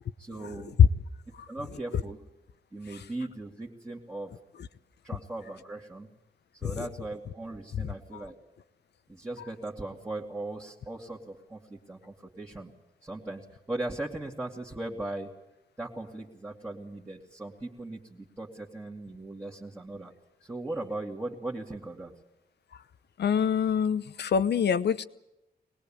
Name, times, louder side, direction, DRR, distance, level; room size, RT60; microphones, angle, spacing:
voice 1, 0.2-0.8 1.5-2.2 2.7-4.4 5.0-6.1 6.5-8.3 9.1-12.7 13.0-15.3 15.8-20.1 20.4-22.1, right 2 dB, 15° right, -4 dB, 2.1 m, -38 dB
voice 2, 23.2-25.0, left 8 dB, 85° left, 14 dB, 1.0 m, -23 dB
24.0 x 20.0 x 8.7 m, 0.91 s
wide cardioid pair, 155°, 17 cm